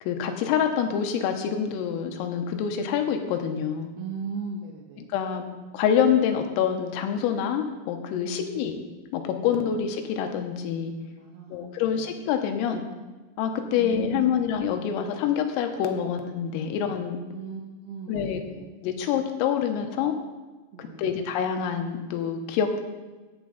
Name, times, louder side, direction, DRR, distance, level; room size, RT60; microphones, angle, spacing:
voice 1, 0.0-3.9 5.1-5.5 5.7-8.8 9.1-10.9 11.5-12.8 13.4-17.2 18.1-18.4 18.8-20.1 20.8-22.8, left 8 dB, 90° left, 5 dB, 3.6 m, -26 dB
voice 2, 4.0-5.1 8.2-8.6 9.5-9.8 11.2-12.2 13.8-14.4 17.3-18.7 20.7-21.1, right 5 dB, 80° right, 0 dB, 2.3 m, -38 dB
16.0 x 8.7 x 4.0 m, 1.3 s
omnidirectional pair, 6.0 m